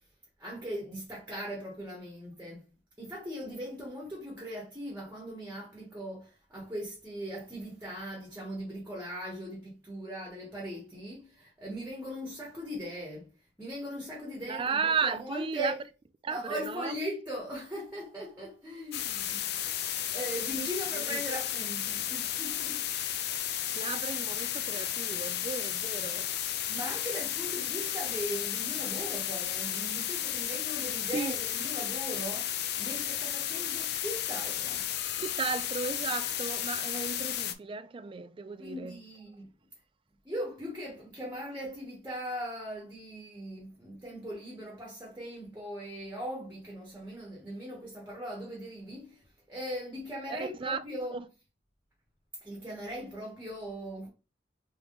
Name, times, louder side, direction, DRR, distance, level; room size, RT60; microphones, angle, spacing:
voice 1, 0.4-2.6 3.0-13.3 13.6-15.8 16.3-19.5 20.1-22.9 26.7-34.9 38.6-39.5 40.2-51.2 52.4-54.1, equal, 10° right, 1.2 m, -39 dB
voice 2, 14.5-15.7 16.2-16.9 20.6-20.7 21.1-21.2 23.7-26.3 31.1-31.3 35.2-39.0 50.3-50.8 51.1-51.2, right 5 dB, 30° right, 0.3 m, -34 dB
sound 1, 18.9-37.5, left 11 dB, 60° left, 0.4 m, -33 dB
3.5 x 3.1 x 3.8 m
head